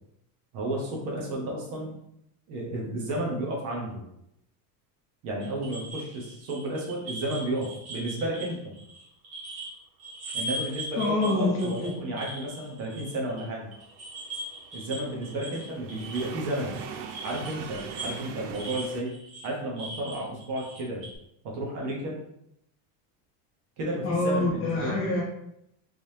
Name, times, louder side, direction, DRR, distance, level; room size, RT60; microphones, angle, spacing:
voice 1, 0.5-1.9 2.5-4.0 5.2-8.7 10.3-13.7 14.7-16.8 17.2-19.1 19.4-21.0 21.4-22.2 23.8-25.0, right 1 dB, 40° right, -2 dB, 0.9 m, -32 dB
sound 1, 5.4-9.7 10.0-13.4 13.7-21.1, right 1 dB, 20° right, 0.3 m, -40 dB
voice 2, 11.0-12.0 24.0-25.2, left 2 dB, 30° left, -4 dB, 0.8 m, -26 dB
sound 2, 12.1-19.0, right 7 dB, 80° right, 0.6 m, -42 dB
3.6 x 3.2 x 2.7 m, 0.77 s
cardioid pair, 180°, 47 cm